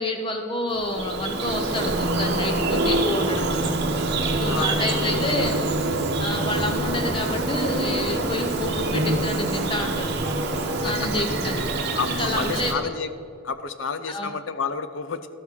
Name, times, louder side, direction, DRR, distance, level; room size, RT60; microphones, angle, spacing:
voice 1, 0.0-3.7 4.4-5.6 6.2-10.2 10.8-11.6 12.2-12.7 14.1-14.3, left 1 dB, 25° left, 4 dB, 0.7 m, -28 dB
Bird vocalization bird call bird song, 0.7-12.7, right 2 dB, 50° right, 0.9 m, -25 dB
voice 2, 4.2-4.7 5.2-5.6 6.5-6.7 10.8-10.9 11.9-13.1 13.4-15.3, left 5 dB, 65° left, 11 dB, 0.6 m, -30 dB
sound 1, 4.6-11.5, equal, 10° left, 1.4 m, -42 dB
12.5 x 6.0 x 6.0 m, 2.5 s
head